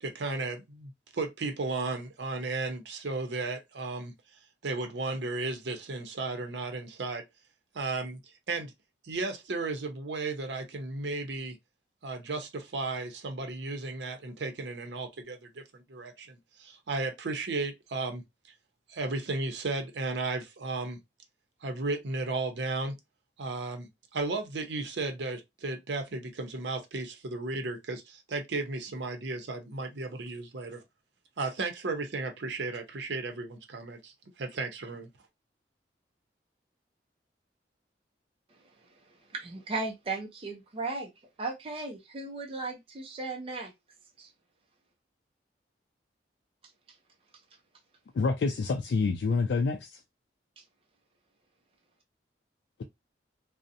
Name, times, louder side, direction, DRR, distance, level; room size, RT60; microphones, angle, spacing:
voice 1, 0.0-4.1 4.6-7.2 7.7-8.2 8.5-8.7 9.0-11.6 12.0-18.2 18.9-21.0 21.6-23.0 23.4-30.8 31.4-35.1, right 3 dB, 80° right, 0.6 m, -34 dB
voice 2, 39.3-41.1 41.4-43.7 44.2-44.3 50.6-50.7, right 3 dB, 30° right, 0.4 m, -36 dB
voice 3, 48.1-50.0, left 4 dB, 70° left, 0.3 m, -27 dB
2.5 x 2.0 x 2.6 m
head